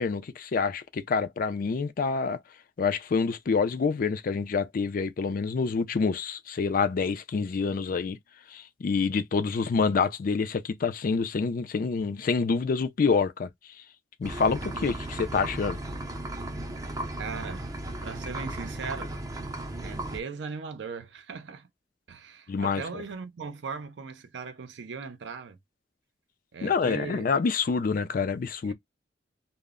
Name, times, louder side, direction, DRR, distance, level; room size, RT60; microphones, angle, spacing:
voice 1, 0.0-2.4 2.8-8.2 8.5-13.5 14.2-15.8 22.5-23.0 26.6-28.7, left 5 dB, 50° left, 0.4 m, -27 dB
sound 1, 14.2-20.2, right 1 dB, 20° right, 0.4 m, -35 dB
voice 2, 17.2-17.7 18.0-19.5 19.8-21.7 22.1-25.6 26.5-27.4 28.6-28.7, right 5 dB, 75° right, 0.5 m, -39 dB
2.1 x 2.0 x 3.5 m
head